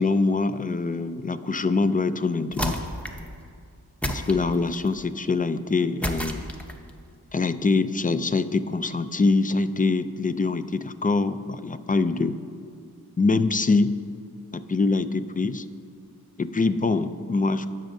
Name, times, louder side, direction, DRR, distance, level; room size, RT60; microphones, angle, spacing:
voice 1, 0.0-2.8 4.1-6.5 7.3-12.4 13.2-13.9 14.5-15.7 16.4-17.7, left 3 dB, 25° left, 12 dB, 0.4 m, -24 dB
sound 1, 2.5-3.3 4.0-4.9 6.0-6.9, equal, 5° left, 0.8 m, -31 dB
18.0 x 6.2 x 2.6 m, 2.2 s
wide cardioid pair, 50°, 39 cm